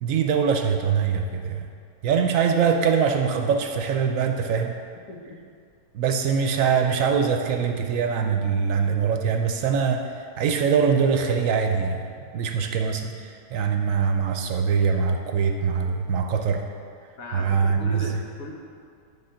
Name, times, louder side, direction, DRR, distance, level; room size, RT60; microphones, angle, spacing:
voice 1, 0.0-1.7 2.0-4.8 5.9-16.7 17.3-18.1, right 6 dB, 70° right, 5 dB, 0.9 m, -23 dB
voice 2, 5.1-5.4 17.2-18.5, left 1 dB, 70° left, -1 dB, 1.5 m, -37 dB
10.0 x 3.8 x 5.7 m, 2.3 s
omnidirectional pair, 1.5 m